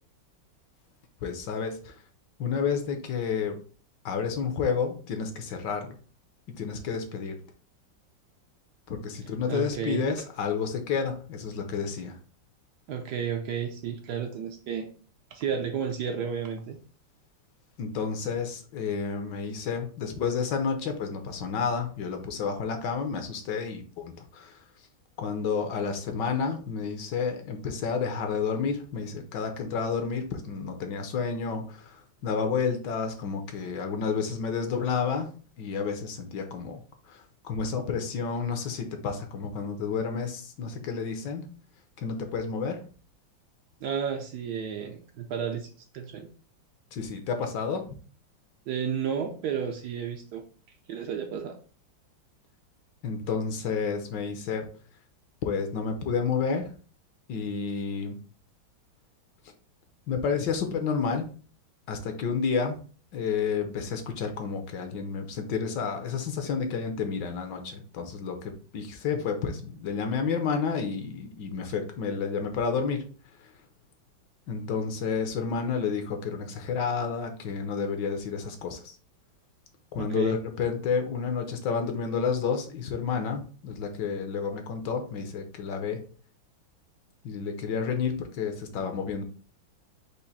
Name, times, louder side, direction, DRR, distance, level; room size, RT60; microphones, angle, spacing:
voice 1, 1.2-1.9 2.4-3.6 4.0-6.0 6.6-7.4 8.9-12.2 17.8-24.6 25.2-35.3 35.6-36.8 37.1-41.5 42.0-42.8 46.9-48.0 53.0-54.6 55.4-56.7 57.3-58.2 60.1-61.3 61.9-62.8 63.1-73.0 74.5-79.0 79.9-86.0 87.2-89.2, left 6 dB, 70° left, 6 dB, 1.3 m, -30 dB
voice 2, 9.5-10.1 12.9-14.9 15.3-16.8 43.8-45.7 45.9-46.3 48.7-50.4 50.9-51.6 80.0-80.4, right 7 dB, 70° right, 4 dB, 1.1 m, -32 dB
5.0 x 2.5 x 4.0 m, 0.40 s
omnidirectional pair, 2.1 m